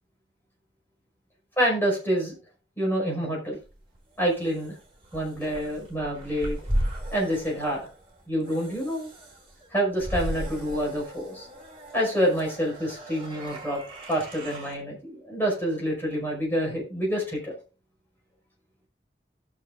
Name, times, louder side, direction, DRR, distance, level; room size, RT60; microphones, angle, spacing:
voice 1, 1.6-2.4 2.8-3.6 4.2-4.8 5.1-6.6 7.1-7.9 8.3-9.1 9.7-11.5 11.9-13.8 14.1-17.5, equal, 10° left, -3 dB, 5.4 m, -27 dB
sound 1, 3.7-14.8, right 1 dB, 30° right, 3.6 m, -36 dB
18.0 x 7.0 x 2.5 m, 0.34 s
head